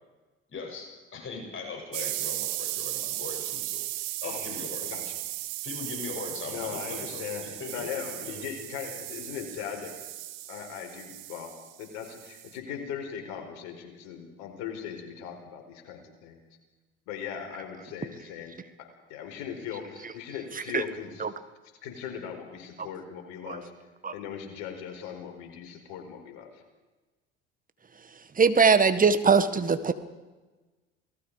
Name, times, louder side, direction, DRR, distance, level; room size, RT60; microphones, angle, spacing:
voice 1, 0.5-3.9 4.2-5.0 5.6-7.9 8.2-8.4, left 4 dB, 40° left, 1 dB, 7.7 m, -40 dB
sound 1, 1.9-12.6, right 16 dB, 70° right, 1.8 m, -36 dB
voice 2, 4.8-5.2 6.5-10.0 10.5-11.5 11.8-16.4 17.1-18.6 19.1-21.2 21.8-23.7 24.1-26.5, left 8 dB, 65° left, 4 dB, 4.8 m, -39 dB
voice 3, 28.3-29.9, right 5 dB, 25° right, 11 dB, 1.7 m, -21 dB
28.0 x 19.0 x 5.0 m, 1.2 s
hypercardioid pair, 65°, 31 cm